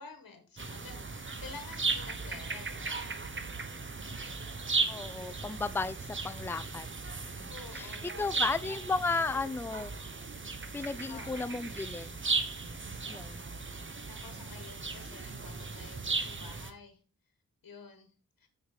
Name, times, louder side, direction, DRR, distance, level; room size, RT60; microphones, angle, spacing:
voice 1, 0.0-3.2 7.5-9.4 11.1-11.5 14.0-17.0 17.6-18.5, left 4 dB, 70° left, 6 dB, 1.4 m, -50 dB
sound 1, 0.6-16.7, right 4 dB, 35° right, 1.0 m, -36 dB
voice 2, 4.9-7.0 7.4-9.9 10.7-12.2 13.1-13.4, left 3 dB, 5° left, 14 dB, 0.4 m, -34 dB
6.3 x 5.0 x 4.8 m, 0.37 s
cardioid pair, 45°, 35 cm